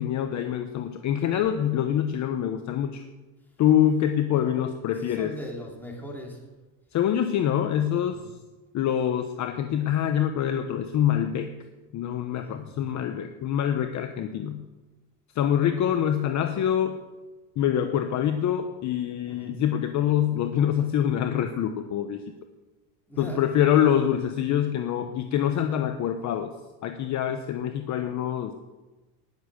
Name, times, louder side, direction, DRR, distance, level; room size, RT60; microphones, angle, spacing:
voice 1, 0.0-3.0 3.6-5.3 6.9-8.2 8.7-11.5 11.9-14.6 15.3-17.0 17.6-22.2 23.2-26.5 26.8-28.5, left 10 dB, 40° left, 7 dB, 0.9 m, -25 dB
voice 2, 4.9-6.4 8.1-8.3 12.4-12.9 19.3-19.5 23.1-23.4 26.1-26.4, equal, 5° left, -2 dB, 3.5 m, -40 dB
19.0 x 7.2 x 6.4 m, 1.2 s
supercardioid pair, 135°, 45 cm